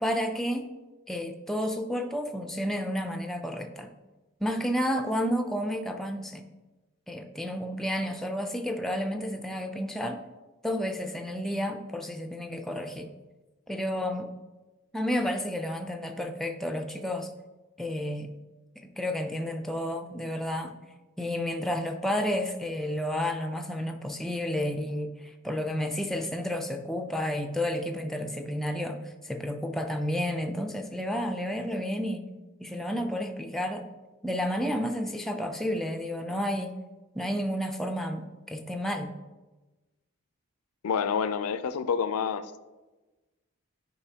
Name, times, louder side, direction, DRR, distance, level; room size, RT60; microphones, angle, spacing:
voice 1, 0.0-0.7 1.1-3.9 4.4-6.4 7.1-10.2 10.6-13.1 13.7-14.3 14.9-17.3 17.8-18.3 18.8-20.8 21.2-32.3 32.6-33.9 34.2-36.7 37.1-39.1, equal, ahead, 4 dB, 0.3 m, -31 dB
voice 2, 40.8-42.4, left 6 dB, 85° left, 13 dB, 0.4 m, -28 dB
9.9 x 4.8 x 2.8 m, 1.2 s
head